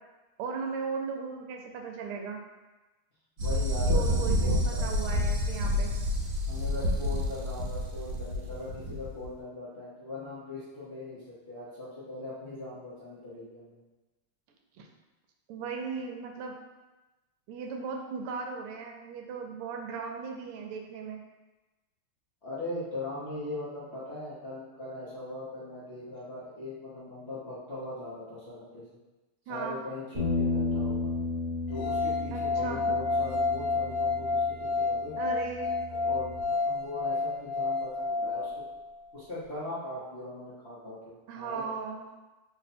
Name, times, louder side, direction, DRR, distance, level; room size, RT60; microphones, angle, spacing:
voice 1, 0.4-2.4 3.9-5.9 14.8-14.9 15.5-16.6 17.5-21.2 29.5-29.8 32.3-32.8 35.2-35.7 41.3-42.1, right 5 dB, 85° right, 2 dB, 1.5 m, -37 dB
voice 2, 3.4-5.5 6.5-13.8 22.4-28.8 29.5-31.1 31.7-35.2 36.0-38.5 39.1-41.8, left 2 dB, 55° left, -12 dB, 0.7 m, -40 dB
sound 1, 3.4-9.3, left 1 dB, 65° right, 1.3 m, -28 dB
sound 2, 30.1-36.4, left 3 dB, 45° right, 1.3 m, -34 dB
sound 3, 31.7-38.8, left 3 dB, 90° left, 1.5 m, -30 dB
4.1 x 2.1 x 4.1 m, 1.1 s
omnidirectional pair, 2.4 m